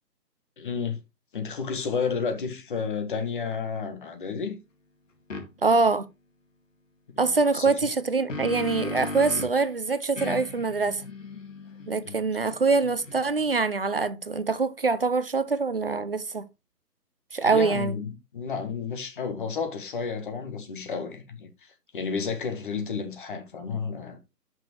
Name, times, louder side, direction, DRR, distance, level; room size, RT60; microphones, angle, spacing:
voice 1, 0.6-1.0 1.3-4.6 7.1-7.7 12.0-12.4 17.4-24.2, left 5 dB, 30° left, 1.5 m, -32 dB
sound 1, 5.3-5.5 7.9-9.6 10.2-13.5, left 2 dB, 50° left, 2.1 m, -37 dB
voice 2, 5.6-6.1 7.2-11.0 11.9-16.5 17.3-17.9, right 4 dB, 40° right, 0.5 m, -24 dB
10.0 x 6.2 x 3.2 m
figure-of-eight pair, 145°, 48 cm